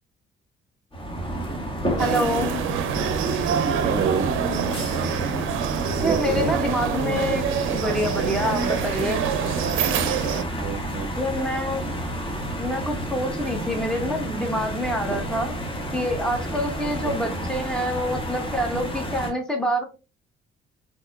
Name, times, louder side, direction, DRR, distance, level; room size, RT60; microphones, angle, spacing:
sound 1, 0.9-19.3, right 1 dB, 25° left, 1.2 m, -31 dB
voice 1, 2.0-2.5 6.0-9.2 11.1-11.8 12.6-15.6 15.9-19.8, equal, 5° left, 3 dB, 0.9 m, -26 dB
sound 2, 2.0-10.4, right 7 dB, 85° right, 0.5 m, -26 dB
voice 2, 3.8-4.3 6.1-6.6 10.5-11.5 17.0-17.5, right 5 dB, 40° right, 6 dB, 0.6 m, -30 dB
3.8 x 2.9 x 2.3 m, 0.30 s
cardioid pair, 90°, 20 cm